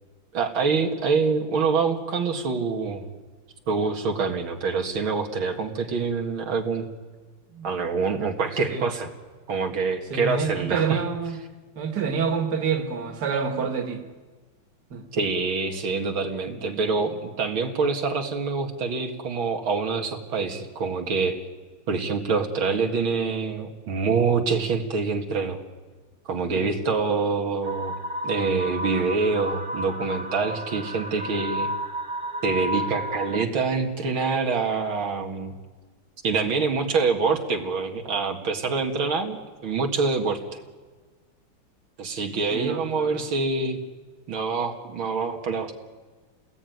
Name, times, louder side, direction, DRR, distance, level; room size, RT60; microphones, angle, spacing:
voice 1, 0.3-3.0 3.7-6.9 7.6-9.1 9.5-11.0 15.1-21.4 21.9-25.6 26.3-27.9 28.2-31.7 32.4-35.5 36.2-40.6 42.0-43.8 44.3-45.7, right 4 dB, 90° right, 3 dB, 2.7 m, -26 dB
voice 2, 10.1-11.4 11.8-14.0 14.9-15.0 16.5-16.6 26.5-26.7 42.5-43.2, right 6 dB, 55° right, 5 dB, 2.5 m, -28 dB
sound 1, 27.6-33.4, equal, 30° right, 1.4 m, -32 dB
29.5 x 20.0 x 9.4 m, 1.4 s
omnidirectional pair, 2.2 m